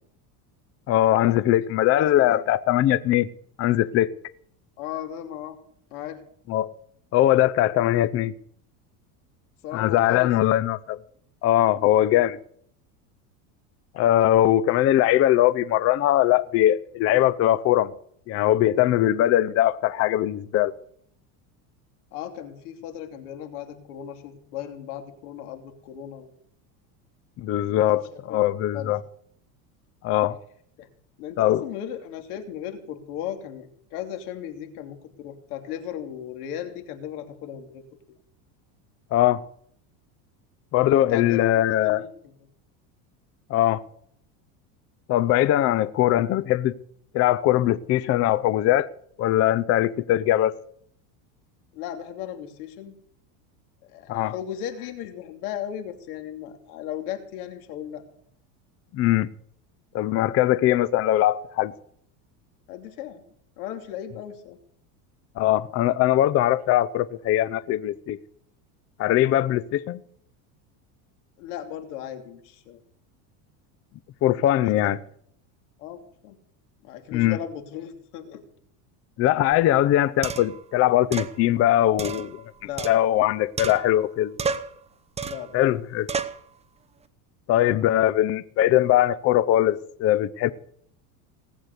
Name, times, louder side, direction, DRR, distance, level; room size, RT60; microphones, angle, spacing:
voice 1, 0.9-3.3 3.6-4.2 6.5-6.8 7.1-8.3 9.7-11.0 11.4-12.4 13.9-17.9 18.3-20.7 27.4-29.0 30.0-30.4 31.4-31.6 39.1-39.4 40.7-42.0 43.5-43.8 45.1-46.7 47.1-48.9 49.2-50.5 54.1-54.3 58.9-59.3 59.9-61.7 65.4-68.2 69.0-70.0 74.2-75.0 77.1-77.4 79.2-82.4 82.8-84.3 85.5-86.1 87.5-90.5, left 13 dB, 35° left, 0.5 m, -21 dB
voice 2, 1.9-2.4 4.8-5.6 5.9-6.2 9.6-10.5 22.1-26.3 27.7-28.9 30.8-30.9 31.2-37.8 40.9-42.1 51.7-52.9 53.8-58.0 62.7-63.2 63.6-64.6 71.4-72.8 74.6-74.8 75.8-76.4 76.8-78.4 82.6-83.0 85.2-85.6, left 10 dB, 85° left, 3.1 m, -36 dB
sound 1, 79.5-79.6 80.2-80.6 81.1-81.3 82.0-83.3 83.6-84.1 84.4-84.8 85.2-85.5 86.1-86.4, right 5 dB, 15° right, 0.8 m, -31 dB
19.0 x 8.2 x 8.2 m
supercardioid pair, 145°, 44 cm